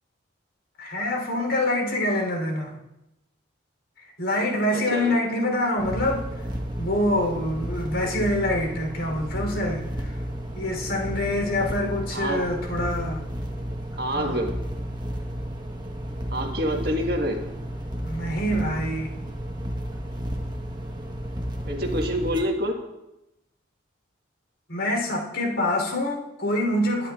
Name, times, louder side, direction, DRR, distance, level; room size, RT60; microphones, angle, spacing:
voice 1, 0.8-2.8 4.0-6.3 6.8-10.2 10.6-13.2 14.1-14.4 18.0-19.1 24.7-27.1, left 1 dB, 75° left, -1 dB, 3.7 m, -26 dB
voice 2, 4.7-5.2 12.1-12.5 14.0-14.5 16.3-17.4 21.7-22.8, equal, 50° right, 1 dB, 1.7 m, -27 dB
sound 1, 5.8-22.4, equal, 20° right, 1.3 m, -32 dB
22.0 x 10.0 x 2.5 m, 0.92 s
head